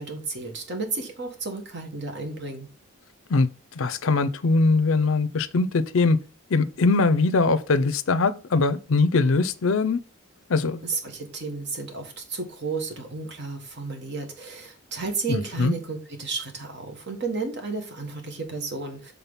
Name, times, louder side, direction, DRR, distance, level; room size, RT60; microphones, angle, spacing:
voice 1, 0.0-2.7 10.8-19.1, right 4 dB, 50° right, 1.4 m, -32 dB
voice 2, 3.7-6.2 6.5-10.0 10.5-10.8 15.3-15.7, left 3 dB, 70° left, 0.5 m, -21 dB
5.8 x 3.7 x 5.5 m
head